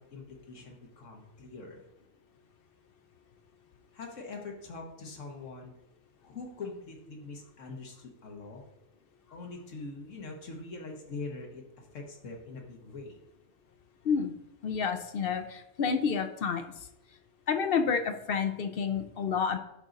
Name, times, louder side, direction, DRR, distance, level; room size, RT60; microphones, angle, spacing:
voice 1, 0.0-1.8 3.9-5.7 6.2-8.6 9.3-13.2, left 3 dB, 75° left, 1 dB, 1.5 m, -43 dB
voice 2, 14.6-16.6 17.5-19.6, left 6 dB, 60° left, 7 dB, 0.7 m, -29 dB
11.0 x 3.8 x 4.0 m, 0.83 s
omnidirectional pair, 1.3 m